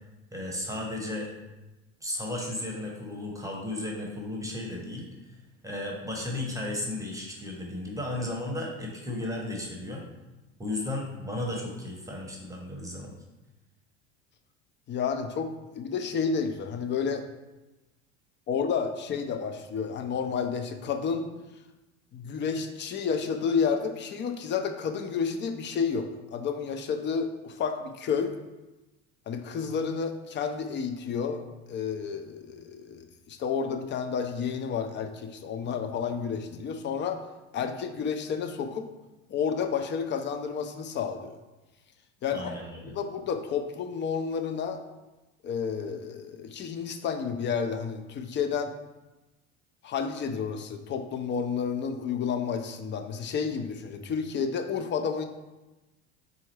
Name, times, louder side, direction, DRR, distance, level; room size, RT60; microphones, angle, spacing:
voice 1, 0.3-1.3 2.0-5.1 5.6-10.0 10.6-13.1 42.3-42.9, left 1 dB, 10° right, -1 dB, 0.8 m, -34 dB
voice 2, 14.9-17.2 18.5-21.3 22.1-28.3 29.3-31.4 31.7-37.2 37.5-38.9 39.3-41.3 42.2-42.5 42.9-44.8 45.4-48.7 49.8-55.2, left 6 dB, 30° left, 7 dB, 0.4 m, -30 dB
4.1 x 3.5 x 3.2 m, 1.1 s
hypercardioid pair, 90°, 38 cm